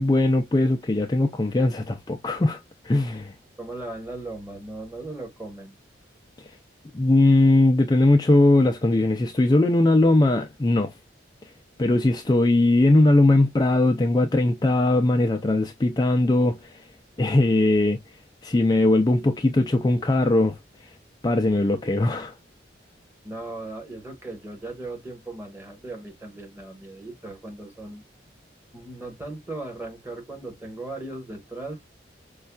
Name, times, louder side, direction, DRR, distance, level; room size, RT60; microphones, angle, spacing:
voice 1, 0.0-2.6 2.8-3.3 6.4-6.6 6.9-10.9 11.4-11.5 11.8-16.9 17.2-18.0 18.4-20.9 21.2-22.4, left 2 dB, 20° left, 0.4 m, -20 dB
voice 2, 3.6-5.8 23.2-28.0 28.7-31.8, right 2 dB, 10° right, 1.3 m, -37 dB
5.3 x 2.3 x 2.2 m
head